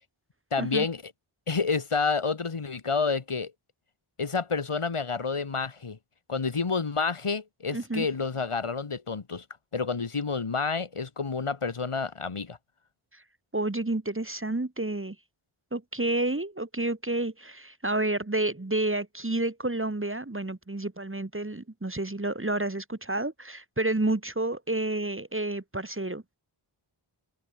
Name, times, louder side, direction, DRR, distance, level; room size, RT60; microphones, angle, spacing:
voice 1, 0.5-1.1 1.5-3.5 4.2-6.0 6.3-9.4 9.7-12.6, left 4 dB, 85° left, 2.5 m, -29 dB
voice 2, 7.7-8.1 13.5-15.2 15.7-26.2, right 2 dB, 25° right, 1.7 m, -30 dB
wide cardioid pair, 50°, 50 cm